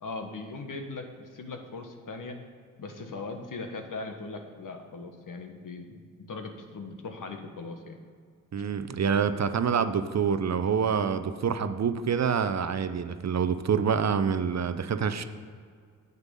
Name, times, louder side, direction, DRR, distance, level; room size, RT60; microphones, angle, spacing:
voice 1, 0.0-2.4 2.8-8.0, left 3 dB, 60° left, 5 dB, 1.4 m, -39 dB
voice 2, 8.5-15.2, right 6 dB, 45° right, 11 dB, 0.7 m, -26 dB
8.1 x 8.1 x 5.3 m, 2.1 s
supercardioid pair, 45°, 37 cm